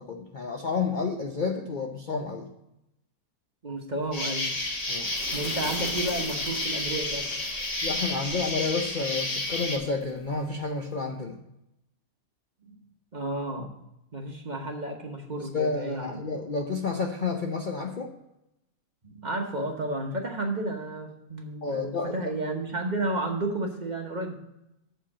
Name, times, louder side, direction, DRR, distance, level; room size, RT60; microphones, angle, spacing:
voice 1, 0.0-2.5 4.9-5.1 7.8-11.4 15.4-18.1 21.6-22.3, left 4 dB, 70° left, 2 dB, 0.4 m, -30 dB
voice 2, 3.6-4.5 5.3-7.5 12.8-12.9 13.1-13.7 14.1-16.2 19.0-24.4, right 2 dB, 35° right, 2 dB, 0.9 m, -32 dB
sound 1, 4.1-10.7, left 1 dB, 40° left, 1.4 m, -45 dB
Insect, 4.1-9.8, left 2 dB, 25° left, 1.0 m, -31 dB
7.6 x 5.0 x 7.1 m, 0.87 s
omnidirectional pair, 1.7 m